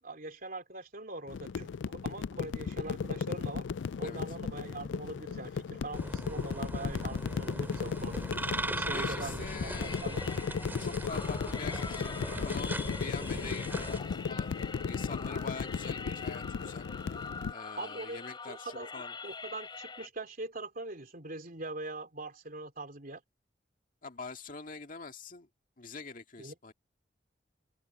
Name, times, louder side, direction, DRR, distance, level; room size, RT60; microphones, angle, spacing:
voice 1, 0.0-3.6 4.0-8.2 8.7-10.2 17.8-18.9 19.2-23.2 26.4-26.5, right 2 dB, 50° right, 3.3 m, -42 dB
sound 1, 1.3-17.5, left 6 dB, 85° left, 0.4 m, -36 dB
sound 2, 5.9-14.0, right 1 dB, 10° right, 2.6 m, -39 dB
voice 2, 8.9-10.1 10.8-14.5 14.9-16.9 17.5-19.2 24.0-25.5 25.8-26.7, left 4 dB, 50° left, 2.1 m, -44 dB
sound 3, 9.7-20.1, left 4 dB, 25° left, 2.9 m, -44 dB
head